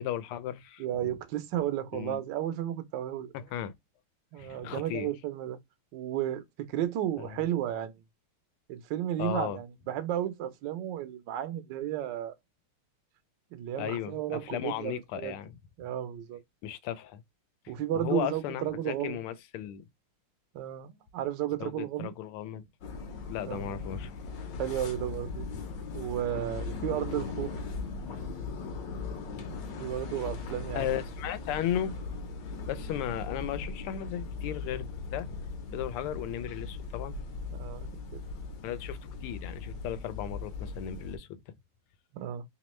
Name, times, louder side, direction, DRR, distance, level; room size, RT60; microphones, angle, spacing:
voice 1, 0.0-1.1 1.9-2.2 3.3-3.7 4.4-5.1 7.2-7.4 9.2-9.6 13.8-15.5 16.6-17.2 17.6-19.8 21.6-22.6 22.9-23.0 23.3-24.2 25.5-25.6 30.7-32.0 32.7-35.3 35.7-37.2 38.6-41.3, left 11 dB, 80° left, 1.5 m, -35 dB
voice 2, 0.8-3.3 4.3-5.6 5.9-8.0 8.7-12.3 13.5-15.4 15.8-16.4 17.7-19.2 20.5-22.1 23.5-23.8 24.6-25.5 25.9-27.6 29.8-30.9 37.5-38.2 42.1-42.4, right 11 dB, 70° right, 1.2 m, -33 dB
sound 1, 22.8-41.2, left 4 dB, 65° left, 1.3 m, -39 dB
3.5 x 3.0 x 3.0 m
omnidirectional pair, 2.4 m